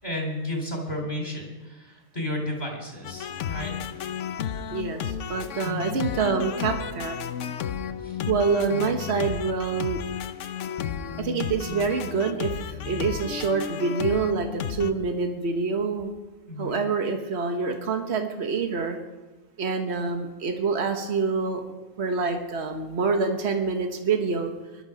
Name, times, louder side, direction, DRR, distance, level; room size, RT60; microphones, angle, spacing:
voice 1, 0.0-3.7 5.6-5.8 8.0-8.2 8.7-9.0 16.5-16.8, left 1 dB, 35° left, 0 dB, 4.4 m, -33 dB
sound 1, 3.0-14.9, left 8 dB, 85° left, 1.1 m, -33 dB
voice 2, 4.7-7.2 8.3-10.0 11.2-16.1 16.6-19.0 19.6-21.6 22.0-24.5, right 4 dB, 65° right, 5 dB, 1.5 m, -26 dB
21.0 x 12.0 x 5.2 m, 1.2 s
omnidirectional pair, 1.2 m